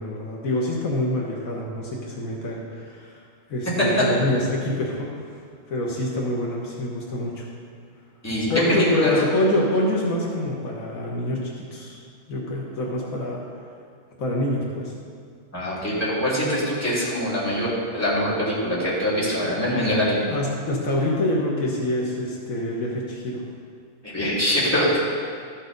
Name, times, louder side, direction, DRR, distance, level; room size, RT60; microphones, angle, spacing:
voice 1, 0.0-3.1 3.5-5.1 5.7-7.5 8.5-12.0 12.3-13.4 14.2-14.9 20.3-23.4, left 1 dB, 80° left, -3 dB, 1.7 m, -26 dB
voice 2, 8.2-9.1 15.5-20.2 24.0-25.0, equal, 10° left, -9 dB, 2.8 m, -23 dB
13.0 x 6.3 x 3.9 m, 2.1 s
omnidirectional pair, 1.4 m